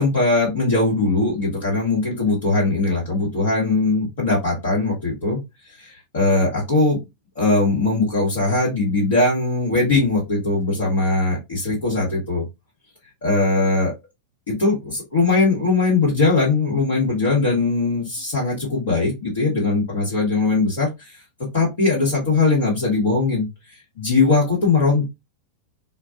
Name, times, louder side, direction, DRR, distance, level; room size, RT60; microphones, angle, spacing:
voice 1, 0.0-5.4 5.8-7.0 7.3-12.4 13.2-13.9 14.5-21.2 21.5-23.5 24.0-25.0, left 3 dB, 60° left, -6 dB, 1.2 m, -20 dB
2.2 x 2.2 x 2.4 m, 0.22 s
figure-of-eight pair, 90°, 0 cm